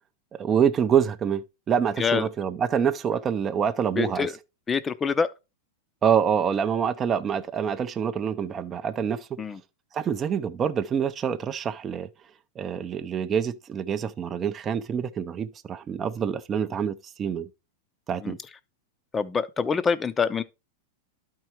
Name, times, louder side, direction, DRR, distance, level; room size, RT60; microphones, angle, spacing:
voice 1, 0.3-4.3 6.0-9.3 9.9-12.1 12.6-17.5 18.1-18.4, right 8 dB, 25° right, 0.6 m, -26 dB
voice 2, 2.0-2.3 4.0-4.3 4.7-5.3 9.4-9.6 18.2-18.4 19.1-20.4, left 5 dB, 20° left, 0.6 m, -25 dB
12.0 x 4.6 x 3.0 m
hypercardioid pair, 125°, 0 cm